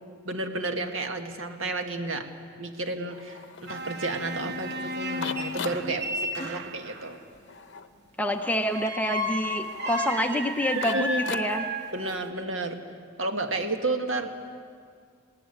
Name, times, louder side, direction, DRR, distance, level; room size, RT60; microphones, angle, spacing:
voice 1, 0.3-2.3 2.6-7.2 10.9-11.2 11.9-12.8 13.2-14.3, right 2 dB, 65° right, 5 dB, 1.8 m, -31 dB
sound 1, 3.1-11.9, left 5 dB, 55° left, 0.8 m, -41 dB
sound 2, 3.7-7.1 8.6-12.3, equal, 50° right, 1.1 m, -33 dB
voice 2, 8.2-11.6, left 1 dB, 5° left, 4 dB, 0.7 m, -27 dB
19.0 x 18.0 x 9.7 m, 2.1 s
head